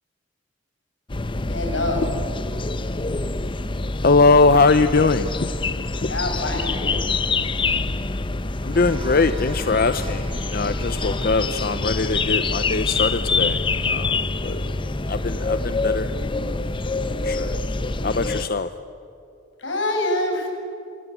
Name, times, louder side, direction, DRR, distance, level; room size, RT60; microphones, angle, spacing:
sound 1, 1.1-18.5, left 3 dB, 25° left, 0.8 m, -26 dB
voice 1, 1.5-2.1 6.1-7.0 19.6-20.5, left 1 dB, 90° left, 2 dB, 7.2 m, -25 dB
voice 2, 4.0-5.5 8.6-13.6 13.9-14.6 15.1-16.1 16.5-16.6 17.2-17.6 18.0-18.7, left 3 dB, 50° left, 11 dB, 0.8 m, -21 dB
sound 2, 8.7-18.5, equal, 30° right, 3.2 m, -38 dB
27.0 x 23.0 x 9.3 m, 2.7 s
head